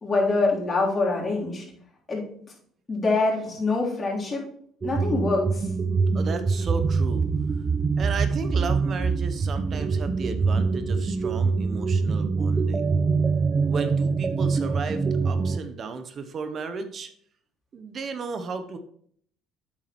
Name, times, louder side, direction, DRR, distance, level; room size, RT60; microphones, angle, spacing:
voice 1, 0.0-1.7 2.1-2.2 2.9-4.4 4.8-5.7, left 3 dB, 35° left, -4 dB, 3.4 m, -25 dB
sound 1, 4.8-15.6, right 4 dB, 30° right, 0.5 m, -24 dB
voice 2, 6.1-7.3 8.0-12.8 13.6-17.1 17.7-18.8, right 4 dB, 50° right, 8 dB, 0.8 m, -34 dB
8.5 x 7.3 x 3.1 m, 0.63 s
supercardioid pair, 75°, 0 cm